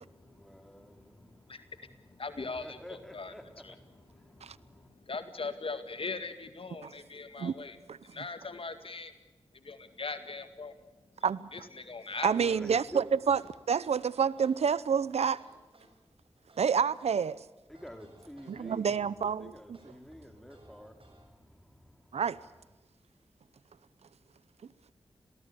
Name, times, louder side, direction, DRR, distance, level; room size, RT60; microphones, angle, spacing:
voice 1, 0.0-5.0 12.3-13.2 17.7-19.1 19.4-22.2, equal, 5° left, 4.7 m, -50 dB
voice 2, 1.2-1.6 2.0-2.8 3.1-3.3 3.6-3.7 4.2-7.8 8.0-9.1 9.5-10.9 11.5-12.6, left 4 dB, 60° left, 2.1 m, -40 dB
voice 3, 12.2-13.4 13.7-15.4 16.6-17.4 18.5-19.5 22.1-22.4, right 6 dB, 85° right, 0.7 m, -28 dB
sound 1, 13.0-17.4 17.7-19.3 19.7-21.3, right 2 dB, 60° right, 7.5 m, -61 dB
27.5 x 18.5 x 8.4 m
cardioid pair, 45°, 11 cm